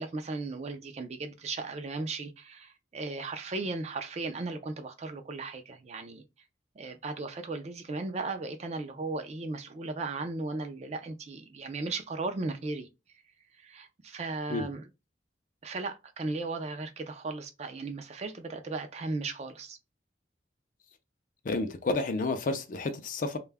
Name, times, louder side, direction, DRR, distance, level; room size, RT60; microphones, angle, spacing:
voice 1, 0.0-6.3 6.8-12.9 13.6-14.8 15.6-19.8, right 3 dB, 35° right, 0.3 m, -36 dB
voice 2, 21.4-23.4, left 3 dB, 45° left, 0.4 m, -30 dB
2.2 x 2.0 x 3.3 m
head